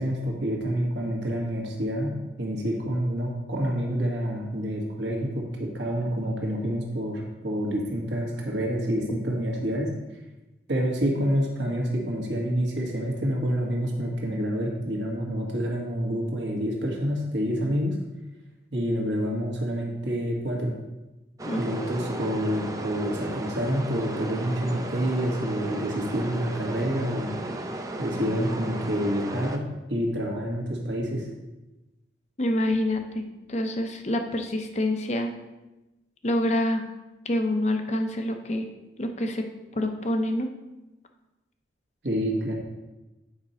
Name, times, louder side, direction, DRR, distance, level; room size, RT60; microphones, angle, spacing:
voice 1, 0.0-9.9 10.7-18.0 18.7-20.7 21.6-27.3 28.0-31.3 42.0-42.5, equal, 75° right, 0 dB, 1.6 m, -28 dB
sound 1, 21.4-29.6, right 1 dB, 20° right, 0.5 m, -35 dB
voice 2, 32.4-35.3 36.2-36.8 37.2-38.7 39.0-39.5 39.7-40.5, left 1 dB, 35° left, 5 dB, 0.7 m, -26 dB
8.7 x 5.3 x 4.3 m, 1.0 s
head